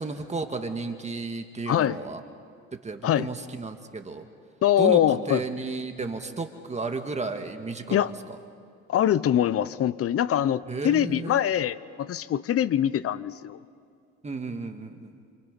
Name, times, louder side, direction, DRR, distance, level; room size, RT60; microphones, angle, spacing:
voice 1, 0.0-2.2 2.8-4.3 4.8-8.1 10.7-11.4 14.2-15.1, right 4 dB, 20° right, 6 dB, 1.8 m, -33 dB
voice 2, 1.7-2.0 3.0-3.3 4.6-5.4 7.9-8.1 8.9-13.6, left 10 dB, 50° left, 17 dB, 0.8 m, -23 dB
29.0 x 27.0 x 5.3 m, 2.3 s
cardioid pair, 105°, 30 cm